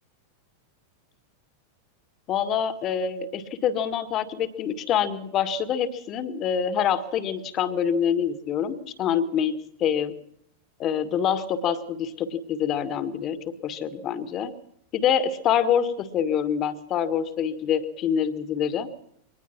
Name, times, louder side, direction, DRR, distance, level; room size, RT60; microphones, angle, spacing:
voice 1, 2.3-10.1 10.8-14.5 14.9-18.9, left 8 dB, 35° left, 10 dB, 1.9 m, -26 dB
23.5 x 19.5 x 6.0 m, 0.70 s
figure-of-eight pair, 90°, 0 cm